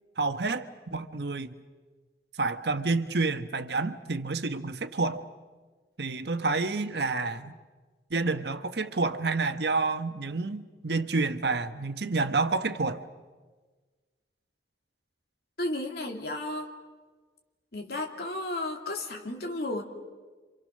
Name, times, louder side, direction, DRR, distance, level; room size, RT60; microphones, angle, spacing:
voice 1, 0.2-1.5 2.4-5.3 6.0-7.5 8.1-13.0, right 3 dB, 75° right, 9 dB, 1.1 m, -29 dB
voice 2, 15.6-16.7 17.7-19.8, left 1 dB, 60° left, 2 dB, 2.7 m, -33 dB
30.0 x 26.0 x 6.5 m, 1.4 s
head